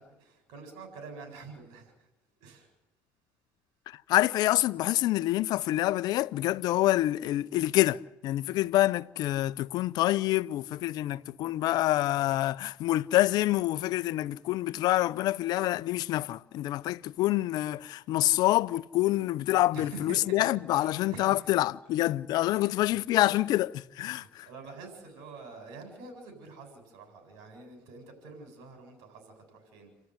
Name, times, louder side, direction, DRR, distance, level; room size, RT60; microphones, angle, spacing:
voice 1, 0.0-2.1 2.4-2.7 19.7-22.0 22.5-23.1 24.0-29.9, right 4 dB, 80° right, 7.8 m, -47 dB
voice 2, 3.9-24.5, left 16 dB, 70° left, 0.7 m, -27 dB
29.0 x 13.0 x 9.7 m
supercardioid pair, 80°, 7 cm